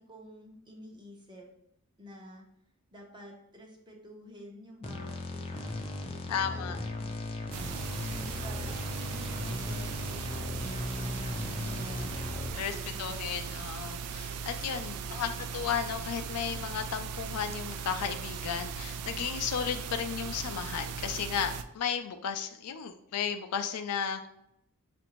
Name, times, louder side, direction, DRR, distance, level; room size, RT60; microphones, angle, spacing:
voice 1, 0.0-1.5 2.0-2.4 2.9-7.2 7.5-13.4 14.9-15.4, equal, 20° right, -1 dB, 0.8 m, -50 dB
sound 1, 4.8-12.5, left 2 dB, 25° left, 0.4 m, -37 dB
voice 2, 6.3-6.8 12.5-24.3, left 7 dB, 85° left, 8 dB, 0.4 m, -34 dB
sound 2, 7.5-21.6, right 6 dB, 90° right, 0.3 m, -38 dB
5.7 x 2.6 x 3.0 m, 0.75 s
head